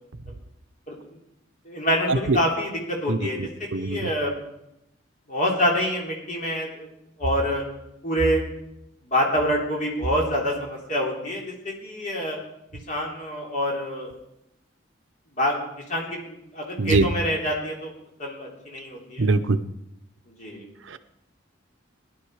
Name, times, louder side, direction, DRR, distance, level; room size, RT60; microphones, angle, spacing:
voice 1, 1.7-3.4 3.8-4.4 5.3-6.9 7.2-7.6 8.0-8.5 9.1-12.4 12.9-14.1 15.4-15.6 15.9-17.9 18.2-19.3 20.4-20.6, equal, 40° left, -1 dB, 3.5 m, -26 dB
voice 2, 19.2-19.6, right 3 dB, 75° right, 11 dB, 0.8 m, -21 dB
17.5 x 11.0 x 4.9 m, 0.83 s
head